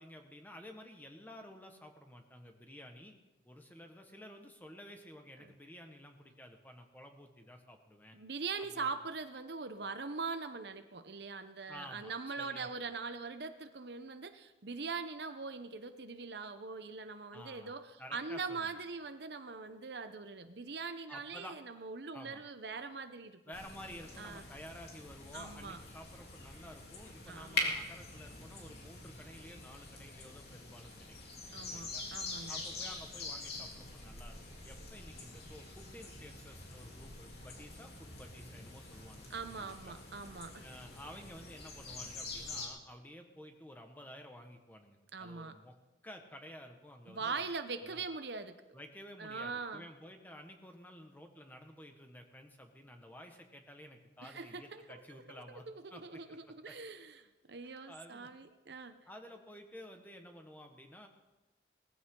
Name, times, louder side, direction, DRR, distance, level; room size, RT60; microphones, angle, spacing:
voice 1, 0.0-3.1 3.4-8.2 8.7-8.9 11.7-12.7 17.3-18.8 21.1-21.6 22.1-22.4 23.5-31.2 31.7-32.0 32.5-39.9 40.6-45.7 46.0-47.5 47.8-48.0 48.7-56.4 56.6-56.7 57.9-58.3 59.0-61.1, left 1 dB, 10° left, 4 dB, 1.5 m, -52 dB
voice 2, 8.1-23.4 24.2-24.4 25.3-25.8 27.3-27.8 31.5-32.6 39.3-40.6 45.1-45.5 47.1-48.6 49.2-49.9 54.2-55.0 55.3-59.0, right 4 dB, 70° right, 9 dB, 0.9 m, -42 dB
sound 1, 23.5-42.7, left 2 dB, 60° left, 3.3 m, -44 dB
19.5 x 15.0 x 3.9 m, 1.1 s
head